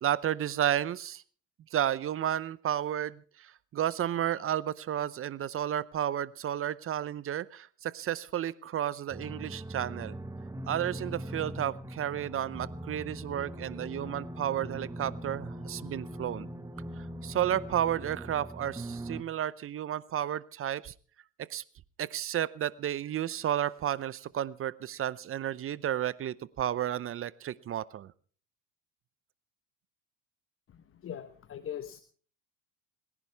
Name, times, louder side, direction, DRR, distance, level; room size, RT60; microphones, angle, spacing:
voice 1, 0.0-1.2 1.7-10.1 10.7-16.5 17.0-20.9 21.5-21.6 22.0-28.1, right 11 dB, 35° right, 19 dB, 0.7 m, -32 dB
sound 1, 9.1-19.2, right 1 dB, 10° right, 1.3 m, -41 dB
voice 2, 31.0-32.0, left 9 dB, 35° left, 10 dB, 1.0 m, -40 dB
28.0 x 11.0 x 3.4 m, 0.43 s
supercardioid pair, 85°, 37 cm